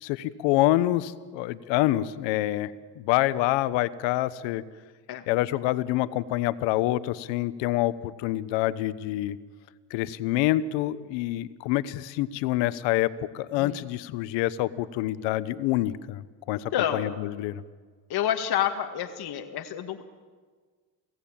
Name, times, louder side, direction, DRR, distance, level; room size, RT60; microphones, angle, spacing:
voice 1, 0.0-4.6 5.3-9.4 9.9-17.6, left 15 dB, 85° left, 16 dB, 1.1 m, -27 dB
voice 2, 13.5-13.9 16.7-17.1 18.1-20.0, left 10 dB, 60° left, 5 dB, 1.9 m, -29 dB
28.5 x 17.5 x 8.8 m, 1.5 s
supercardioid pair, 80°, 43 cm